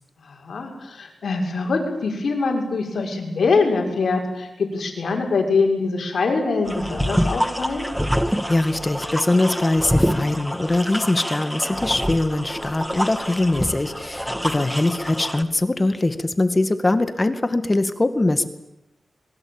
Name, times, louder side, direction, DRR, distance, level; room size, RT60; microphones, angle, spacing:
voice 1, 0.2-7.9 14.5-14.7, left 4 dB, 70° left, 2 dB, 6.3 m, -23 dB
sound 1, 6.7-15.4, equal, ahead, 1.7 m, -26 dB
voice 2, 8.3-18.5, left 2 dB, 25° left, 10 dB, 2.2 m, -22 dB
26.0 x 22.5 x 9.1 m, 0.86 s
wide cardioid pair, 100°, 0 cm